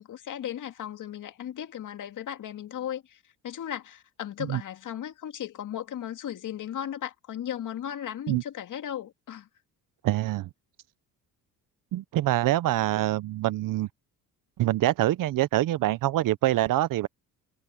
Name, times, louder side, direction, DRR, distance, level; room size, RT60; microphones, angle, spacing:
voice 1, 0.0-9.5, left 10 dB, 55° left, 2.3 m, -36 dB
voice 2, 10.0-10.5 11.9-13.9 14.6-17.1, right 15 dB, 60° right, 0.8 m, -25 dB
cardioid pair, 90°, 37 cm